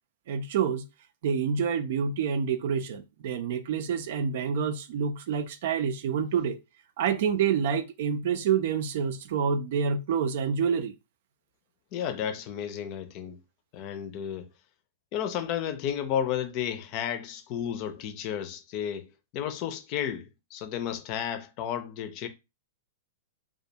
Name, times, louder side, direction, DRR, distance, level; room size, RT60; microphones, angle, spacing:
voice 1, 0.3-0.8 1.2-6.6 7.0-10.9, right 7 dB, 60° right, 0.4 m, -27 dB
voice 2, 11.9-13.4 13.7-14.5 15.1-19.0 19.3-22.3, left 9 dB, 45° left, 0.5 m, -32 dB
2.4 x 2.2 x 2.8 m
hypercardioid pair, 115°, 0 cm